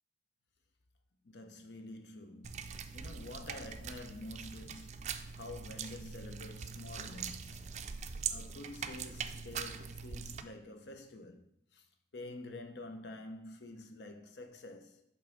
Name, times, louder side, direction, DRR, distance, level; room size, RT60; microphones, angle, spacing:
voice 1, 1.2-7.8 8.3-11.4 11.7-11.9 12.1-15.0, left 2 dB, 85° left, 0.8 m, -48 dB
sound 1, 2.4-10.4, right 6 dB, 40° right, 0.3 m, -42 dB
5.4 x 4.0 x 6.0 m
head